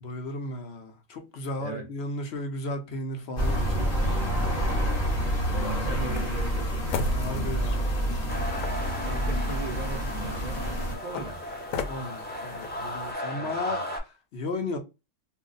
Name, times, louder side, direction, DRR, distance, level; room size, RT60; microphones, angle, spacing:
voice 1, 0.0-3.9 7.1-8.1 11.9-14.8, left 2 dB, 60° left, 0.9 m, -35 dB
sound 1, 3.4-10.9, equal, 40° left, 1.3 m, -28 dB
voice 2, 4.0-5.3 5.6-6.7 9.0-10.6 11.0-11.4 13.3-13.9, right 4 dB, 75° right, 0.4 m, -39 dB
sound 2, 5.4-13.1, left 4 dB, 80° left, 1.0 m, -38 dB
sound 3, 8.3-14.0, equal, 10° left, 0.5 m, -36 dB
2.7 x 2.0 x 3.8 m
omnidirectional pair, 1.4 m